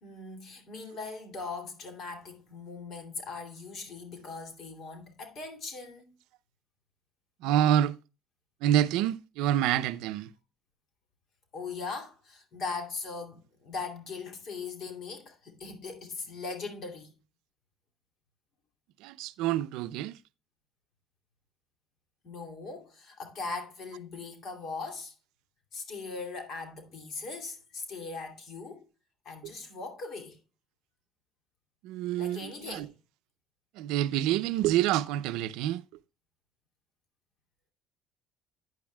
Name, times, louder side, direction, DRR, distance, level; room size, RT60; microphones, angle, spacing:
voice 1, 0.0-6.1 11.5-17.1 22.2-25.1 25.7-28.8 29.2-30.4 32.2-32.9, left 4 dB, 50° left, 2.6 m, -40 dB
voice 2, 7.4-8.0 8.6-10.3 19.0-20.2 31.8-32.9 33.8-35.8, right 12 dB, 90° right, 0.5 m, -27 dB
12.0 x 9.4 x 2.2 m
cardioid pair, 135°, 0 cm